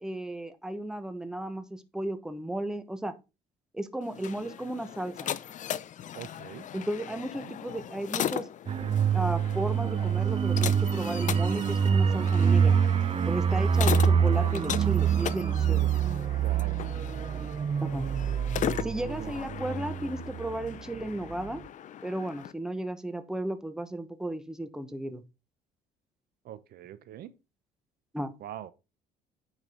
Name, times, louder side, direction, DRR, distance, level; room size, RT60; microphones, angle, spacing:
voice 1, 0.0-3.1 3.7-5.3 6.7-8.4 9.1-12.8 13.3-15.9 17.8-18.1 18.8-21.6 22.0-25.2 28.1-28.3, right 1 dB, 5° right, 1.1 m, -34 dB
sound 1, 4.0-22.5, left 10 dB, 50° left, 0.6 m, -38 dB
voice 2, 6.1-6.7 7.4-7.5 16.4-16.8 19.2-19.3 26.4-27.3 28.4-28.7, right 12 dB, 65° right, 0.9 m, -43 dB
sound 2, 8.7-21.0 21.3-21.5, right 7 dB, 35° right, 0.6 m, -26 dB
8.9 x 5.4 x 3.8 m
cardioid pair, 110°, 17 cm